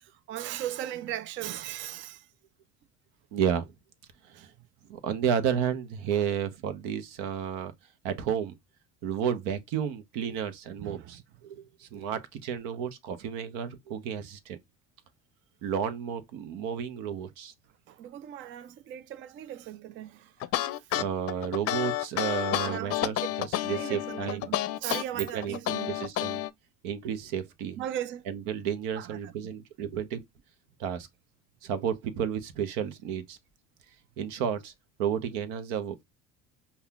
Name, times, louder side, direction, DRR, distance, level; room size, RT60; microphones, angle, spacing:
voice 1, 0.0-2.3 4.3-4.4 6.1-6.2 10.8-11.1 17.9-20.3 22.6-23.3 23.7-25.9 27.8-28.2 29.0-29.3, right 12 dB, 40° right, 0.4 m, -38 dB
voice 2, 3.3-3.7 4.3-4.5 4.9-7.7 8.0-8.5 9.0-14.6 15.6-17.5 20.9-24.5 25.1-25.6 25.9-26.4 26.8-27.8 28.3-30.2 30.8-31.1 31.6-33.4 34.2-34.7 35.0-36.0, right 8 dB, 80° right, 0.9 m, -32 dB
sound 1, 20.4-26.5, left 13 dB, 50° left, 0.5 m, -30 dB
5.4 x 2.3 x 2.3 m
supercardioid pair, 115°, 30 cm